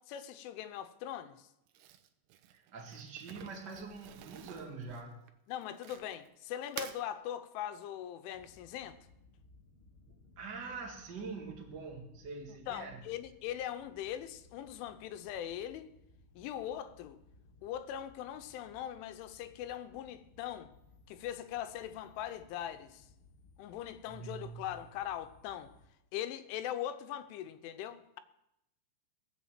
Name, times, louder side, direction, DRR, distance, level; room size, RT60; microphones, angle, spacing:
voice 1, 0.0-1.5 5.5-9.0 12.7-15.9 16.4-17.2 17.6-20.7 21.1-23.1 23.6-25.7 26.1-28.2, left 11 dB, 80° left, 3.2 m, -41 dB
Crumpling crinkling, 1.7-6.3 6.6-7.0, right 11 dB, 90° right, 3.3 m, -49 dB
voice 2, 2.5-5.3 10.3-13.0 24.0-24.7, right 4 dB, 50° right, 1.3 m, -44 dB
sound 1, 8.3-25.9, left 3 dB, 65° left, 1.4 m, -62 dB
17.5 x 8.1 x 7.4 m
omnidirectional pair, 5.6 m